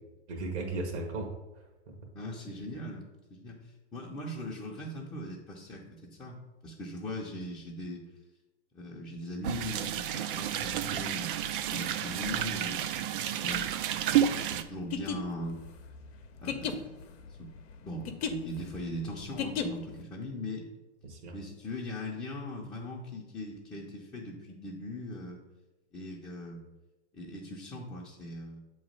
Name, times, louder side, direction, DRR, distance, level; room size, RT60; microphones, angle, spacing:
voice 1, 0.3-2.0 21.0-21.3, right 2 dB, 75° right, 1 dB, 1.4 m, -37 dB
voice 2, 2.1-8.0 8.7-13.7 14.5-15.6 16.3-16.9 17.3-17.5 17.8-20.7 21.3-25.4 25.9-26.6 27.1-28.6, left 1 dB, 10° left, -5 dB, 0.6 m, -40 dB
sound 1, 9.4-14.6, right 10 dB, 50° right, 0.4 m, -31 dB
sound 2, 14.8-20.0, left 7 dB, 60° left, 0.8 m, -36 dB
7.1 x 3.1 x 5.1 m, 1.1 s
hypercardioid pair, 130°, 35 cm